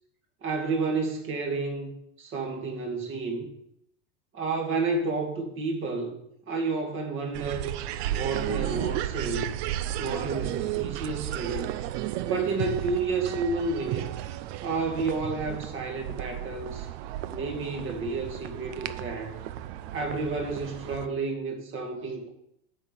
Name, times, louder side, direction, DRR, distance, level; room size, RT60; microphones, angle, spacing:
voice 1, 0.4-3.5 4.3-6.2 6.5-7.7 8.1-9.6 10.0-11.7 12.2-14.1 14.6-16.9 17.3-19.4 19.9-22.3, right 3 dB, 30° right, 2 dB, 2.2 m, -30 dB
sound 1, 7.3-21.1, right 13 dB, 50° right, 0.7 m, -34 dB
8.8 x 6.1 x 6.8 m, 0.75 s
supercardioid pair, 140°, 40 cm